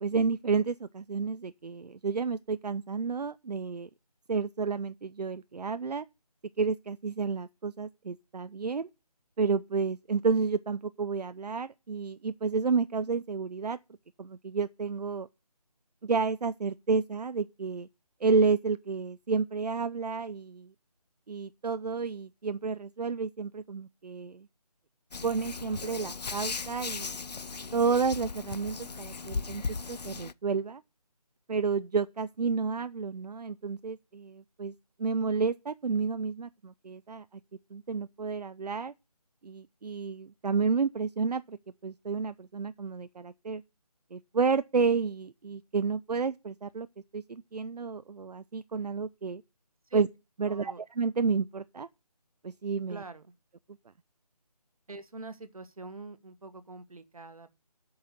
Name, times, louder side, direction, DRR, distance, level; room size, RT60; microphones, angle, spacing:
voice 1, 0.0-3.9 4.3-6.1 6.6-8.9 9.4-13.8 14.2-15.3 16.0-17.9 18.2-20.7 21.3-24.5 25.2-27.2 27.7-29.6 29.9-30.8 31.5-37.4 37.7-38.9 39.4-41.6 41.8-43.6 44.1-46.9 47.1-49.4 49.9-50.1 50.4-51.9 52.4-53.0, right 5 dB, 80° right, 0.6 m, -30 dB
Hands, 25.1-30.3, left 4 dB, 90° left, 0.7 m, -37 dB
voice 2, 50.5-50.8 52.9-53.4 54.9-57.5, right 3 dB, 60° right, 1.4 m, -44 dB
8.5 x 5.7 x 8.0 m
figure-of-eight pair, 180°, 20 cm